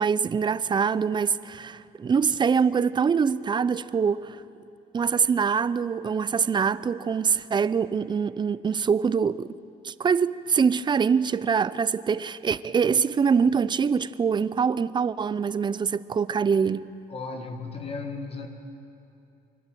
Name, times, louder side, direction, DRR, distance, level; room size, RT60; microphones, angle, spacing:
voice 1, 0.0-4.4 4.9-9.5 9.8-16.9, right 6 dB, 25° right, 0.5 m, -24 dB
voice 2, 17.1-18.5, left 4 dB, 35° left, 1.8 m, -35 dB
26.0 x 12.0 x 9.1 m
cardioid pair, 110°, 17 cm